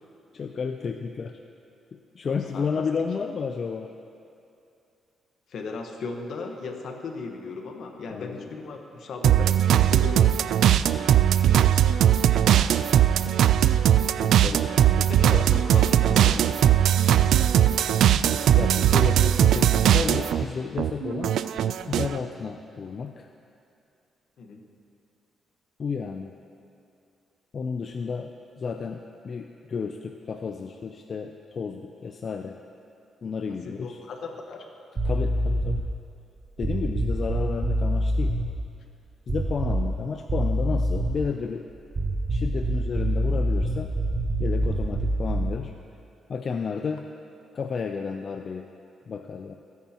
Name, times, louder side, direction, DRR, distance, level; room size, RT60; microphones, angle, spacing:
voice 1, 0.3-1.4 1.9-3.9 8.1-8.5 13.1-13.4 13.9-15.5 18.5-21.4 21.9-23.3 25.8-26.3 27.5-32.6 33.2-34.0 35.0-35.8 36.6-38.4 39.3-41.7 42.3-44.0 44.4-45.7 46.3-47.1 47.5-48.7 49.1-49.6, left 5 dB, 45° left, 5 dB, 0.5 m, -32 dB
voice 2, 2.5-2.8 5.5-10.4 15.2-16.4 24.4-24.6 33.8-34.7, left 4 dB, 70° left, 3 dB, 1.4 m, -37 dB
sound 1, 9.2-20.4 20.8-22.2, right 10 dB, 80° right, 0.3 m, -20 dB
sound 2, 35.0-35.9 36.6-38.5 39.3-40.0 40.3-41.3 41.9-45.6, right 1 dB, 30° right, 1.0 m, -26 dB
26.5 x 9.3 x 3.0 m, 2.6 s
cardioid pair, 120°, 0 cm